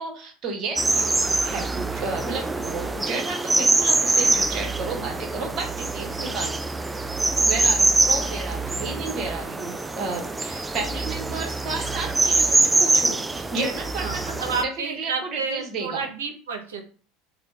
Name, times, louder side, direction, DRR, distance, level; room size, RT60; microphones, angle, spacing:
voice 1, 0.0-6.6 7.5-14.4 14.8-16.1, right 3 dB, 45° right, 1 dB, 1.2 m, -32 dB
sound 1, 0.8-14.6, right 3 dB, 15° right, 0.3 m, -24 dB
voice 2, 14.0-16.8, right 5 dB, 85° right, 4 dB, 0.7 m, -30 dB
3.7 x 2.2 x 3.3 m, 0.41 s
hypercardioid pair, 80°, 0 cm